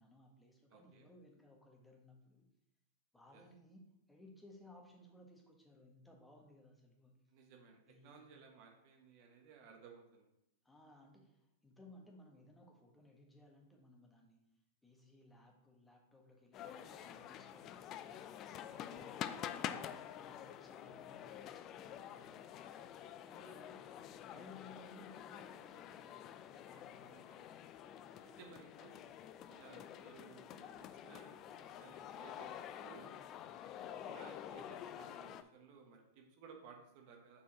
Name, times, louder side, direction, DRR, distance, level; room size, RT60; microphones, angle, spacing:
voice 1, 0.0-2.5 3.1-7.3 7.9-8.3 10.6-14.4 14.8-22.7 23.2-23.8 24.1-27.5 33.4-33.7, left 1 dB, 5° left, 1 dB, 1.4 m, -61 dB
voice 2, 0.7-1.1 3.3-3.4 7.3-10.3 19.0-19.4 23.4-23.5 27.1-27.4 28.2-29.0 29.5-30.7 31.0-33.1 33.6-37.4, right 5 dB, 55° right, 2 dB, 1.2 m, -59 dB
sound 1, 16.5-35.4, left 10 dB, 35° left, 0.4 m, -48 dB
5.8 x 4.8 x 4.2 m, 0.85 s
hypercardioid pair, 110°, 0 cm